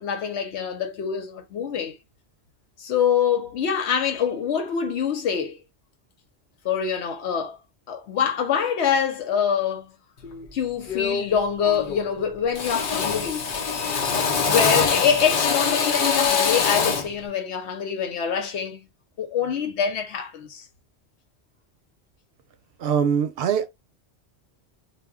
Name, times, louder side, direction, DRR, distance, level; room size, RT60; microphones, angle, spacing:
voice 1, 0.0-2.0 2.8-5.6 6.6-7.6 7.9-9.9 10.5-13.4 14.4-18.9 19.2-20.6, left 7 dB, 90° left, 1.0 m, -25 dB
Drill, 10.2-10.5 10.9-11.4 11.6-12.2 12.5-17.2, left 5 dB, 55° left, 0.7 m, -24 dB
voice 2, 22.8-23.7, right 7 dB, 70° right, 0.8 m, -22 dB
2.2 x 2.1 x 3.5 m
omnidirectional pair, 1.1 m